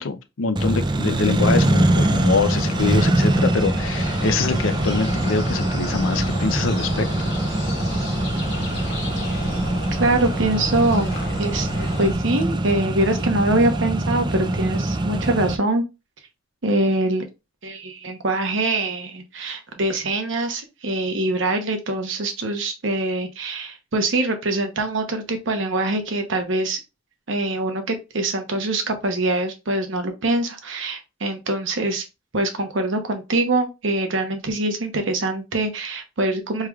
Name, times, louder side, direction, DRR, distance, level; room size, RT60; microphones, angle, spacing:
voice 1, 0.0-7.1, left 4 dB, 80° left, 0.6 m, -24 dB
Accelerating revving vroom, 0.6-15.6, right 1 dB, 25° right, 0.4 m, -23 dB
sound 1, 1.5-12.1, left 1 dB, 55° left, 1.4 m, -32 dB
voice 2, 10.0-15.8 16.6-17.2 17.6-26.8 27.3-32.0 32.3-36.7, right 2 dB, 70° right, 0.9 m, -24 dB
4.7 x 3.3 x 2.3 m
head